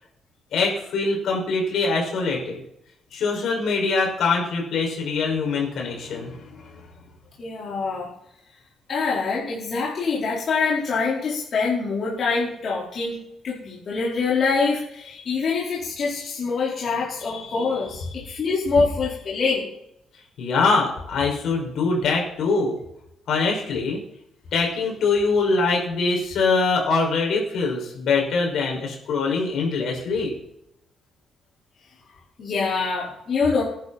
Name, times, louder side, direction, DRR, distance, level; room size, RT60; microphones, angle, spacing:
voice 1, 0.5-2.6 3.1-6.8 17.3-17.7 18.3-18.4 20.4-22.8 23.3-24.0 24.5-30.3, left 4 dB, 70° left, 0 dB, 6.2 m, -23 dB
voice 2, 7.4-8.1 8.9-13.2 13.4-18.0 18.4-19.7 32.4-33.6, left 4 dB, 45° left, -6 dB, 4.5 m, -24 dB
18.5 x 11.0 x 4.4 m, 0.77 s
cardioid pair, 120°, 0 cm